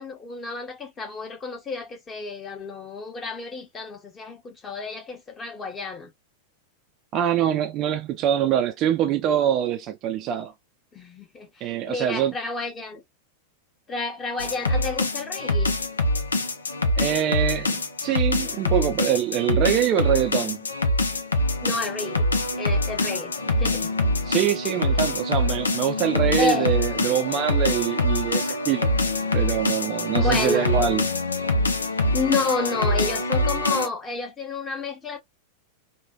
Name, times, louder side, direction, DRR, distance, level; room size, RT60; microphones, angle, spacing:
voice 1, 0.0-6.1 10.9-13.0 13.9-15.8 21.6-22.3 22.6-23.9 26.4-26.7 30.1-30.7 32.1-35.2, left 3 dB, 20° left, 1.1 m, -30 dB
voice 2, 7.1-10.5 11.6-12.3 17.0-20.7 24.3-28.9 29.3-31.0, right 10 dB, 35° right, 0.4 m, -24 dB
sound 1, 14.4-33.9, left 2 dB, 75° left, 0.5 m, -24 dB
3.2 x 2.2 x 2.2 m
figure-of-eight pair, 90°, 0 cm